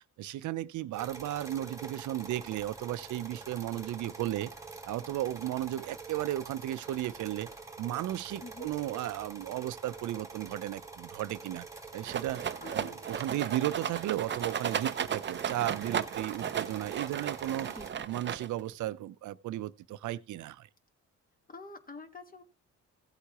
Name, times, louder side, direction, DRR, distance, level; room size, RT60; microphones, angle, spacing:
voice 1, 0.2-4.5 4.9-7.5 7.8-11.7 11.9-17.7 18.1-20.7, right 13 dB, 75° right, 0.7 m, -35 dB
sound 1, 1.0-17.9, right 4 dB, 10° right, 1.5 m, -46 dB
voice 2, 8.4-8.7 12.6-13.1 17.6-18.1 21.5-22.4, left 3 dB, 30° left, 1.6 m, -47 dB
Rattle, 12.1-18.7, right 8 dB, 40° right, 0.6 m, -35 dB
15.5 x 8.2 x 3.0 m
cardioid pair, 90°, 30 cm